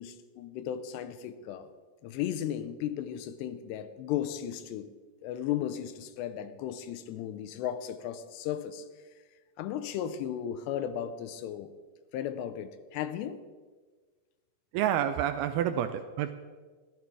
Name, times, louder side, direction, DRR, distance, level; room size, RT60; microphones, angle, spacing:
voice 1, 0.0-1.7 2.0-4.9 5.2-8.9 9.6-11.7 12.1-13.4, left 10 dB, 80° left, 11 dB, 2.8 m, -35 dB
voice 2, 14.7-16.3, right 10 dB, 85° right, 9 dB, 2.3 m, -29 dB
14.0 x 12.0 x 4.7 m, 1.4 s
omnidirectional pair, 5.0 m